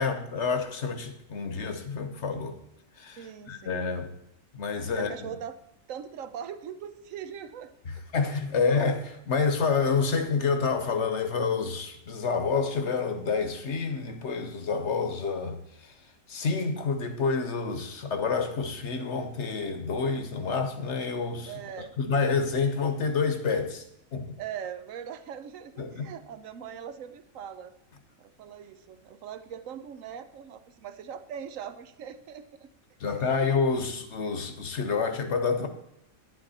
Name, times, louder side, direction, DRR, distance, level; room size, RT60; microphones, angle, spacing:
voice 1, 0.0-2.6 3.0-4.1 4.5-5.1 8.1-15.9 16.3-21.5 22.0-23.8 24.1-24.4 25.8-26.1 33.0-35.7, left 5 dB, 60° left, 1.2 m, -28 dB
voice 2, 3.2-4.0 4.9-5.6 5.9-8.0 21.5-21.9 24.4-27.7 28.2-32.7 33.0-33.5, right 8 dB, 70° right, 1.1 m, -41 dB
10.5 x 9.9 x 4.2 m
omnidirectional pair, 1.4 m